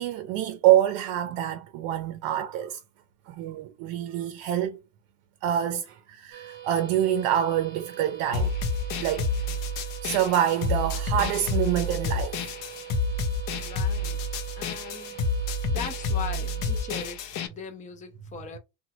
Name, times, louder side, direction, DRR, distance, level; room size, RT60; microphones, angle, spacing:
voice 1, 0.0-2.8 3.3-4.8 5.4-8.5 9.0-9.3 10.0-12.4, right 11 dB, 70° right, 0.6 m, -26 dB
sound 1, 6.3-17.1, right 11 dB, 35° right, 0.8 m, -44 dB
sound 2, 8.3-17.5, left 2 dB, 55° left, 0.7 m, -29 dB
voice 2, 13.6-14.2 14.6-15.2 15.6-18.6, left 5 dB, 20° left, 0.5 m, -39 dB
2.8 x 2.2 x 2.9 m
supercardioid pair, 115°, 38 cm